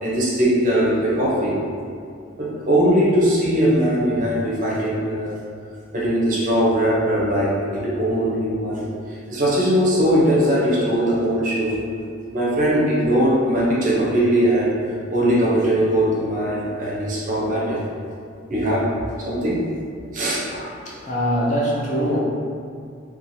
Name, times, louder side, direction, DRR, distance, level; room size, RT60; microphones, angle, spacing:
voice 1, 0.0-1.6 2.4-5.3 5.9-11.7 12.3-14.8 15.1-17.8 18.5-18.8 19.2-19.6 20.1-20.4, equal, 40° right, -6 dB, 0.6 m, -20 dB
voice 2, 20.5-22.2, equal, 35° left, -5 dB, 0.4 m, -23 dB
2.9 x 2.3 x 2.6 m, 2.3 s
head